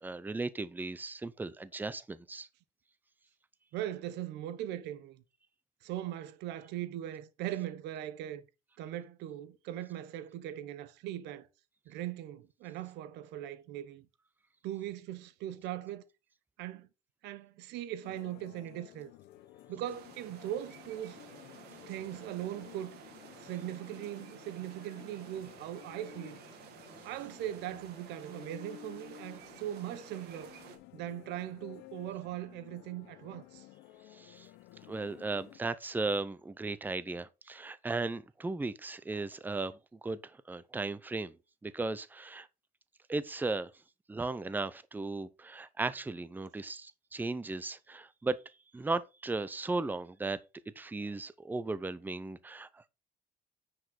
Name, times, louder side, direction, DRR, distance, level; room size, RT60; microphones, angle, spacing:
voice 1, 0.0-2.5 34.1-34.5 34.9-41.4 41.6-42.5 43.1-43.7 44.1-48.4 48.7-50.4 50.8-52.8, right 3 dB, 10° right, 0.6 m, -36 dB
voice 2, 3.7-5.2 5.8-8.4 8.8-11.5 11.9-14.1 14.6-16.0 16.6-16.9 17.2-19.1 19.7-21.2 21.9-23.0 23.4-26.4 27.0-30.5 30.9-33.7, right 12 dB, 90° right, 0.9 m, -40 dB
sound 1, 18.0-35.6, left 15 dB, 90° left, 0.7 m, -54 dB
sound 2, 19.9-30.8, right 8 dB, 70° right, 1.8 m, -53 dB
9.6 x 5.1 x 4.2 m
cardioid pair, 110°, 17 cm